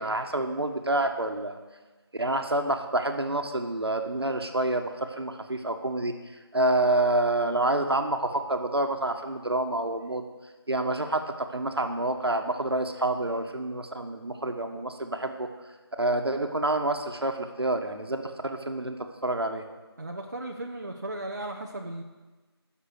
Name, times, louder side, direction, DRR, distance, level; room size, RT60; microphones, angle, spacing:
voice 1, 0.0-1.6 2.1-6.1 6.5-10.2 10.7-15.5 16.0-19.6, right 2 dB, 70° right, 5 dB, 1.4 m, -28 dB
voice 2, 20.0-22.0, right 1 dB, 40° right, 1 dB, 0.8 m, -36 dB
11.5 x 6.7 x 8.0 m, 1.2 s
figure-of-eight pair, 170°, 14 cm